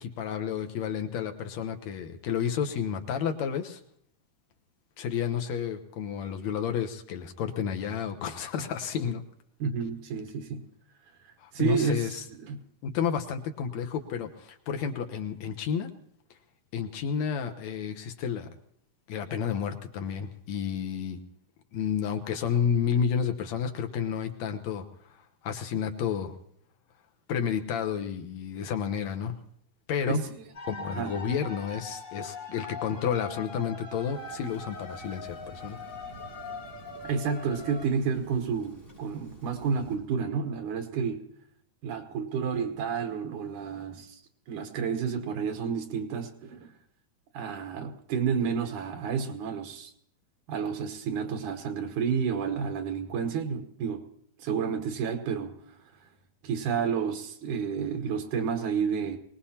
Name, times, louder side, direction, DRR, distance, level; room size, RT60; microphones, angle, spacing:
voice 1, 0.0-3.8 5.0-9.2 11.4-12.2 12.8-15.9 16.7-18.5 19.1-21.2 21.7-24.9 25.4-26.3 27.3-29.3 29.9-30.2 30.7-35.8, left 7 dB, 70° left, 5 dB, 2.1 m, -31 dB
voice 2, 9.6-10.6 11.5-12.6 30.1-30.3 30.9-31.1 37.0-41.2 41.8-44.2 44.5-46.7 47.3-49.9 50.5-54.0 54.4-55.8 56.4-59.2, right 6 dB, 80° right, 7 dB, 2.6 m, -30 dB
sound 1, 30.5-37.9, left 3 dB, 30° left, 2.1 m, -41 dB
Rain, 34.1-40.0, right 1 dB, 5° right, 6.0 m, -51 dB
23.0 x 19.0 x 2.9 m, 0.68 s
omnidirectional pair, 3.4 m